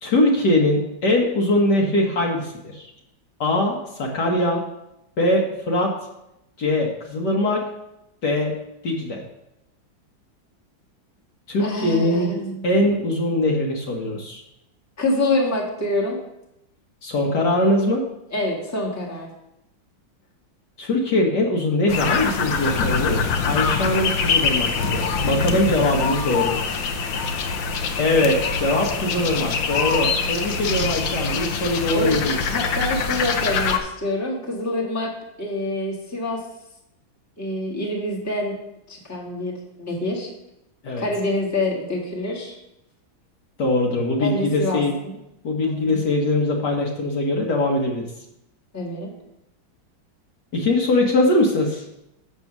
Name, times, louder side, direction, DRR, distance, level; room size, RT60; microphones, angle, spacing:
voice 1, 0.0-2.9 3.4-4.6 5.2-5.9 6.6-7.6 8.2-8.5 8.8-9.2 11.5-12.3 12.6-14.4 17.0-18.0 20.8-23.2 23.5-26.6 28.0-32.4 40.8-41.1 43.6-45.0 45.4-48.1 50.5-51.8, left 1 dB, 60° left, 0 dB, 1.7 m, -21 dB
voice 2, 11.6-12.7 15.0-16.2 18.3-19.3 31.9-32.2 32.5-35.1 35.4-36.4 37.4-38.5 38.9-40.3 41.0-42.5 44.2-45.1 45.6-46.0 48.7-49.1, left 1 dB, 10° left, -2 dB, 1.5 m, -26 dB
sound 1, 21.9-33.8, left 5 dB, 75° left, 1.5 m, -24 dB
7.1 x 7.1 x 6.0 m, 0.87 s
omnidirectional pair, 2.2 m